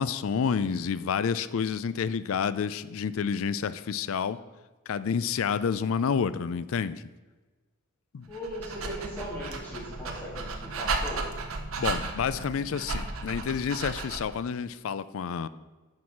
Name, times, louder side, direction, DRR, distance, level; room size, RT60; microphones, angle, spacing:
voice 1, 0.0-4.4 4.9-7.0 8.1-8.3 11.8-15.5, left 6 dB, 70° left, 16 dB, 0.4 m, -29 dB
voice 2, 8.3-11.2, equal, 10° left, -6 dB, 2.2 m, -38 dB
Dog, 8.3-14.4, right 3 dB, 70° right, 0.9 m, -34 dB
9.4 x 4.8 x 5.9 m, 1.2 s
head